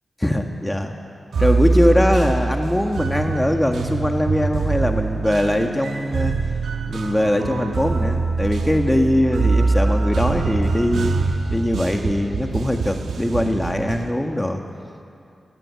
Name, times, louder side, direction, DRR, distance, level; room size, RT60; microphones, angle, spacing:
voice 1, 0.2-0.9 1.4-6.3 6.9-11.1 11.5-14.6, left 1 dB, 10° left, 4 dB, 1.8 m, -21 dB
sound 1, 1.3-14.1, right 3 dB, 90° right, 1.4 m, -23 dB
20.5 x 14.5 x 9.8 m, 2.5 s
cardioid pair, 55°, 0 cm